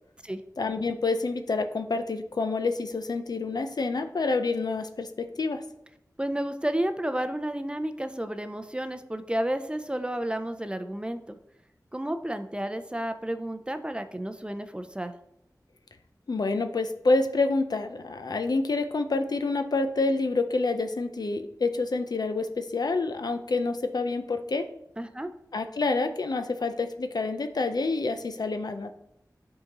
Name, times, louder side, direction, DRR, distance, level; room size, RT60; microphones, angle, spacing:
voice 1, 0.6-5.1 5.4-5.6 16.3-24.7 25.5-28.9, left 3 dB, 80° left, 7 dB, 0.5 m, -27 dB
voice 2, 6.2-11.4 11.9-15.1 25.0-25.3, right 1 dB, 15° right, 8 dB, 0.4 m, -31 dB
10.5 x 3.8 x 2.9 m, 0.79 s
wide cardioid pair, 70°, 7 cm